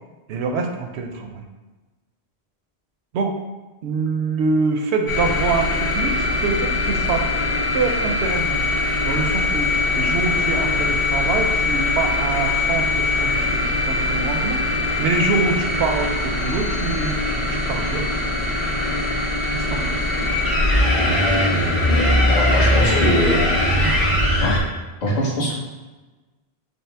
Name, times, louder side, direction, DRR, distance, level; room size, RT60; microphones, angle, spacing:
voice 1, 0.3-1.4 3.1-3.4 3.8-7.3 7.7-8.6 9.0-18.1 19.5-20.0 23.7-23.9, right 4 dB, 75° right, 4 dB, 0.8 m, -25 dB
sound 1, 5.1-24.6, left 2 dB, 65° left, 1.3 m, -21 dB
voice 2, 22.2-23.4 23.8-24.1 24.4-24.6 25.0-25.5, equal, 45° left, -6 dB, 1.0 m, -23 dB
5.3 x 2.0 x 3.3 m, 1.2 s
omnidirectional pair, 1.1 m